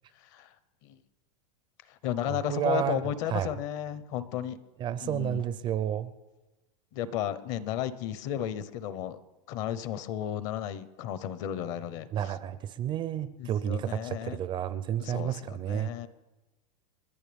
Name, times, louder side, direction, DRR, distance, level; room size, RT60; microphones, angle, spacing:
voice 1, 0.2-0.5 0.8-1.0 1.9-4.6 5.0-5.4 6.9-9.2 9.5-12.3 13.4-14.4 15.0-16.1, left 10 dB, 50° left, 15 dB, 0.9 m, -34 dB
voice 2, 2.3-3.0 3.3-3.5 4.8-6.1 12.1-15.9, right 10 dB, 25° right, 15 dB, 0.4 m, -31 dB
30.0 x 11.0 x 3.5 m, 1.1 s
supercardioid pair, 145°, 20 cm